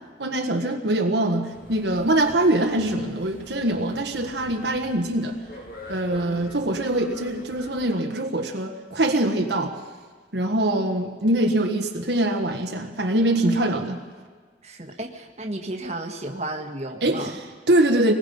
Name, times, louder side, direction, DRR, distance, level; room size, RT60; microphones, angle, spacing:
voice 1, 0.2-5.4 5.9-9.7 10.3-14.0 17.0-18.1, right 1 dB, 65° right, 3 dB, 1.5 m, -23 dB
sound 1, 1.5-7.9, left 1 dB, 50° left, 2.6 m, -45 dB
voice 2, 6.1-6.5 13.4-13.6 14.6-17.4, right 1 dB, 35° right, 2 dB, 1.7 m, -33 dB
26.0 x 20.0 x 5.5 m, 1.5 s
head